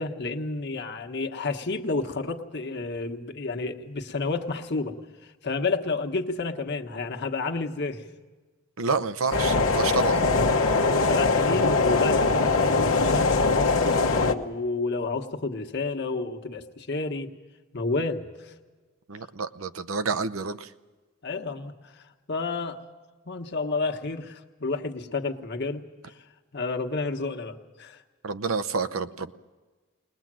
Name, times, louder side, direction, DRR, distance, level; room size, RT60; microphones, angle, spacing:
voice 1, 0.0-4.9 5.2-8.0 10.4-17.3 17.7-18.5 21.2-21.9 22.3-22.8 23.2-25.8 26.5-28.0, left 3 dB, 55° left, 4 dB, 1.3 m, -30 dB
voice 2, 8.8-10.2 19.1-20.7 28.2-29.3, right 4 dB, 85° right, 12 dB, 0.8 m, -29 dB
sound 1, 9.3-14.3, left 3 dB, 90° left, 1.1 m, -22 dB
21.0 x 20.0 x 7.6 m, 1.3 s
head